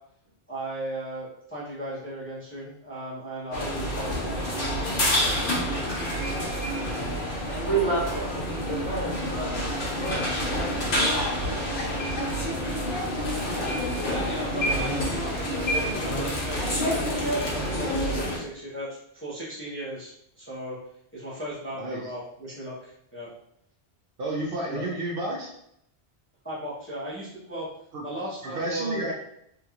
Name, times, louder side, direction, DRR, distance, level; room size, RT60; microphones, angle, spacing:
voice 1, 0.5-4.6 14.0-20.8 21.1-23.3 24.7-24.9 26.4-27.7 28.0-29.1, right 1 dB, 15° left, -8 dB, 0.8 m, -36 dB
sound 1, 3.5-18.4, equal, 60° left, 1.0 m, -28 dB
voice 2, 7.4-8.5 9.2-11.4, right 3 dB, 25° right, -9 dB, 1.5 m, -31 dB
voice 3, 24.2-25.5 27.9-28.1 28.4-29.1, right 1 dB, 65° right, -3 dB, 0.8 m, -30 dB
2.9 x 2.8 x 2.4 m, 0.72 s
omnidirectional pair, 1.0 m